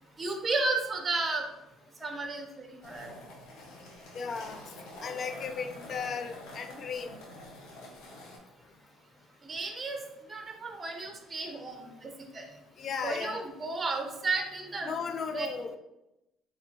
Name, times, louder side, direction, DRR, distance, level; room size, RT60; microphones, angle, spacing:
voice 1, 0.2-1.4 2.0-3.1 9.4-10.0 10.3-12.5 13.0-14.9 15.3-15.5, right 3 dB, 25° right, 4 dB, 0.8 m, -33 dB
sound 1, 2.8-8.4, left 1 dB, 75° left, 1.2 m, -47 dB
voice 2, 4.1-4.6 5.0-7.1 12.8-13.5 14.8-15.8, left 5 dB, 50° left, 9 dB, 0.4 m, -36 dB
4.2 x 3.4 x 2.9 m, 0.92 s
supercardioid pair, 85°, 0 cm